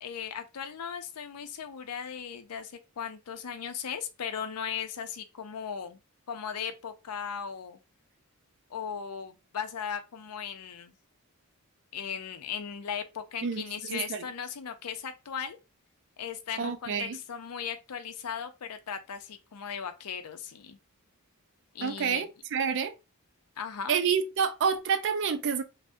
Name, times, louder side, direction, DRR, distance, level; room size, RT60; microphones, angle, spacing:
voice 1, 0.0-6.0 6.3-7.8 8.7-10.9 11.9-15.6 16.2-20.8 21.7-22.3 23.6-23.9, left 7 dB, 85° left, 0.5 m, -37 dB
voice 2, 13.4-14.2 16.6-17.2 21.8-22.9 23.9-25.6, right 6 dB, 55° right, 0.4 m, -28 dB
2.6 x 2.1 x 3.5 m
head